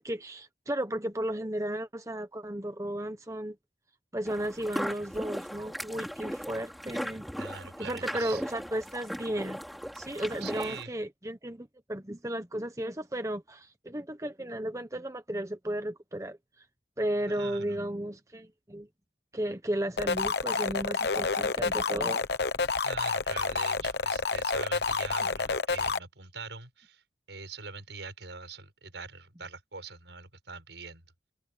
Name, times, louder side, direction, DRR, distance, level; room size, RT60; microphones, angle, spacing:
voice 1, 0.0-3.6 4.1-7.2 7.8-9.6 9.9-16.4 17.0-18.9 19.3-22.2, right 1 dB, 15° right, 1.0 m, -34 dB
sound 1, 4.3-10.8, equal, ahead, 3.4 m, -38 dB
voice 2, 7.4-8.4 10.1-10.9 17.3-17.8 22.8-27.0 27.3-31.0, right 5 dB, 80° right, 6.2 m, -43 dB
sound 2, 20.0-26.0, left 4 dB, 65° left, 1.0 m, -29 dB
head